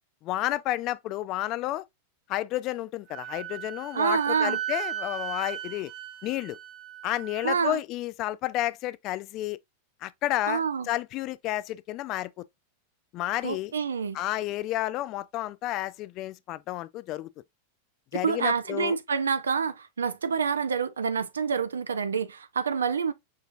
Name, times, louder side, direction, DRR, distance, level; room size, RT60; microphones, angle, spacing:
voice 1, 0.2-1.8 2.3-5.9 6.2-6.6 7.0-9.6 10.0-12.4 13.1-13.7 14.1-17.3 18.1-19.0, left 15 dB, 40° left, 0.3 m, -31 dB
Wind instrument woodwind instrument, 3.1-7.5, right 12 dB, 40° right, 1.2 m, -36 dB
voice 2, 3.9-4.6 7.4-7.8 10.5-10.9 13.4-14.2 18.2-23.1, right 6 dB, 70° right, 0.4 m, -27 dB
5.6 x 2.8 x 2.4 m
figure-of-eight pair, 90°, 0 cm